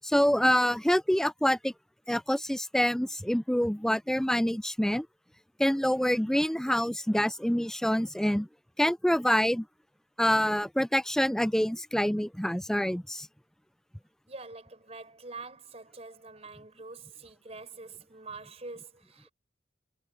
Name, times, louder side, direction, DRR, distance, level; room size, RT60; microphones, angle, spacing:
voice 1, 0.0-1.7 2.1-5.1 5.6-8.5 8.8-9.7 10.2-13.3, equal, 5° left, 0.4 m, -26 dB
voice 2, 14.3-19.3, right 3 dB, 35° right, 4.9 m, -45 dB
head